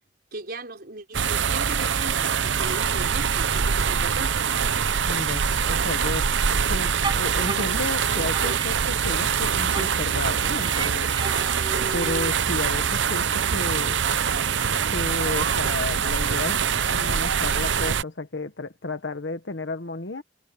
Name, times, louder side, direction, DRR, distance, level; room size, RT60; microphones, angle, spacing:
voice 1, 0.3-4.6, right 2 dB, 60° right, 4.8 m, -38 dB
sound 1, 1.1-18.0, right 7 dB, 85° right, 0.7 m, -24 dB
voice 2, 5.1-11.2 11.9-14.0 14.9-16.6 16.9-20.2, left 2 dB, 70° left, 1.4 m, -32 dB
sound 2, 7.0-9.4 9.7-12.6, right 3 dB, 25° right, 7.2 m, -35 dB
head